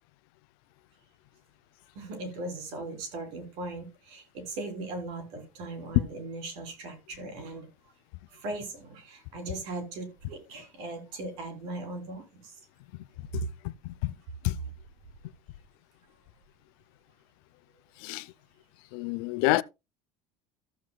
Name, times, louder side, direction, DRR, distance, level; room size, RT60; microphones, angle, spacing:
voice 1, 1.9-7.7 8.3-12.6 13.3-13.4 14.4-14.5, right 2 dB, 65° right, 3.4 m, -38 dB
voice 2, 13.3-14.1 14.4-14.6 18.0-18.3 18.9-19.6, left 19 dB, 90° left, 0.5 m, -29 dB
14.5 x 7.7 x 2.3 m
cardioid pair, 180°, 11 cm